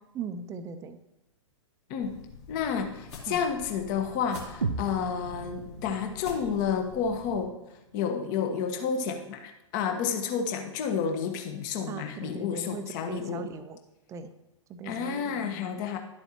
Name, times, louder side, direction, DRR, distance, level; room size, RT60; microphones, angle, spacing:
voice 1, 0.1-1.0 3.3-3.4 11.9-13.8 14.1-14.3 14.7-15.8, right 4 dB, 20° right, 10 dB, 0.6 m, -39 dB
sound 1, 2.0-7.4, left 5 dB, 60° left, 2.8 m, -46 dB
voice 2, 2.5-7.5 7.9-13.5 14.8-16.0, left 6 dB, 40° left, 5 dB, 1.2 m, -30 dB
sound 2, 4.6-8.6, right 4 dB, 80° right, 0.6 m, -38 dB
11.5 x 7.9 x 2.9 m, 0.93 s
figure-of-eight pair, 110°, 17 cm